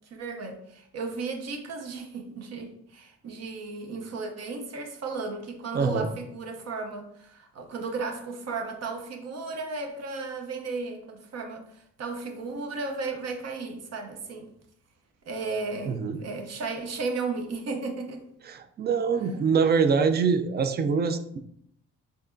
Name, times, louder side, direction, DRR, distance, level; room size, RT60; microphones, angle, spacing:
voice 1, 0.1-14.5 15.3-18.2, right 3 dB, 60° right, 4 dB, 0.8 m, -34 dB
voice 2, 5.7-6.1 15.9-16.2 18.4-21.4, right 5 dB, 35° right, 8 dB, 0.4 m, -24 dB
4.4 x 3.0 x 2.5 m, 0.71 s
cardioid pair, 90°, 30 cm